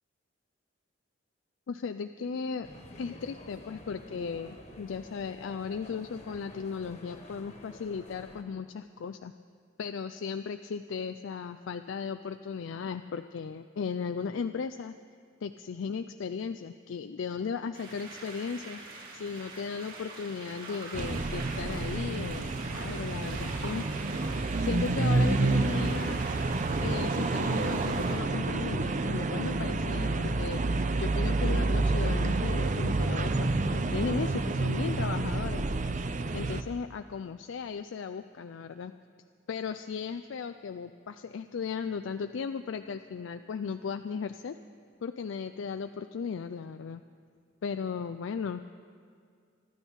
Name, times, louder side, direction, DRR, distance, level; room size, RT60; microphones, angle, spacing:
voice 1, 1.7-2.7 3.0-9.3 9.8-15.0 15.4-18.8 19.1-23.9 24.6-26.2 26.8-30.6 31.0-35.7 36.3-38.9 39.5-44.5 45.0-47.0 47.6-48.6, left 6 dB, 70° left, 9 dB, 0.4 m, -36 dB
sound 1, 2.6-8.4, left 1 dB, 35° left, 1.4 m, -49 dB
sound 2, 17.7-28.2, right 3 dB, 90° right, 4.3 m, -44 dB
sound 3, 20.9-36.6, right 3 dB, 40° right, 0.5 m, -29 dB
25.0 x 12.5 x 3.6 m, 2.2 s
head